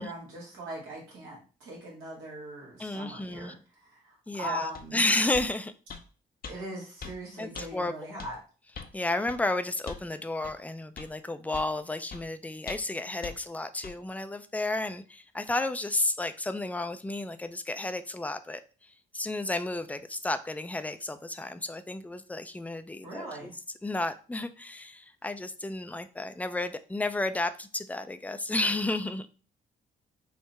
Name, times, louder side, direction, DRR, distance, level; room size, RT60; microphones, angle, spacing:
voice 1, 0.0-5.0 6.4-8.4 23.0-23.5, right 1 dB, 85° right, 1.6 m, -40 dB
voice 2, 2.8-3.5 4.3-5.7 7.4-8.2 8.9-23.5 23.8-29.3, left 2 dB, 5° left, 0.4 m, -32 dB
sound 1, 4.7-4.9 5.3-5.5 5.9-6.1 6.4-6.6 7.0-7.2 7.5-7.7 8.2-8.3 8.7-8.9 9.3-9.4 9.9-10.1 10.4-10.6 11.0-11.1 11.5-11.7 12.1-12.2 12.7-12.9 13.2-13.4 13.8-14.0, left 5 dB, 50° left, 0.6 m, -41 dB
3.7 x 2.1 x 4.1 m
supercardioid pair, 50°, 20 cm